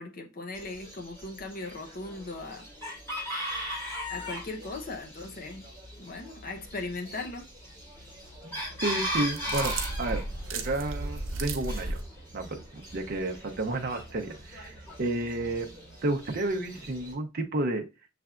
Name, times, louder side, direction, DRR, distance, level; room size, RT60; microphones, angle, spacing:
voice 1, 0.0-2.7 4.1-5.7 6.0-7.5, left 3 dB, 45° left, 0.7 m, -38 dB
Chicken rooster, 0.5-17.1, equal, 15° left, 2.1 m, -39 dB
voice 2, 8.4-10.2 10.5-12.0 12.3-15.7 16.0-17.9, right 2 dB, 50° right, 0.6 m, -31 dB
sound 1, 9.1-12.0, right 2 dB, 80° right, 0.8 m, -34 dB
6.7 x 3.3 x 2.4 m
head